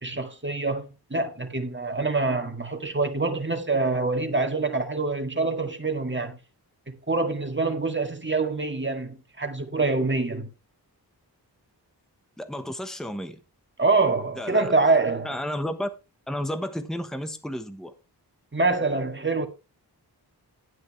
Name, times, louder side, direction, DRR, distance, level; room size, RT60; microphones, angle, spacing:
voice 1, 0.0-6.4 6.9-10.5 13.8-15.3 18.5-19.5, right 3 dB, 30° right, 2.0 m, -25 dB
voice 2, 12.4-13.4 14.4-14.7 15.2-15.9 16.3-17.9, equal, ahead, 1.2 m, -32 dB
11.0 x 9.5 x 3.3 m
wide cardioid pair, 60°, 40 cm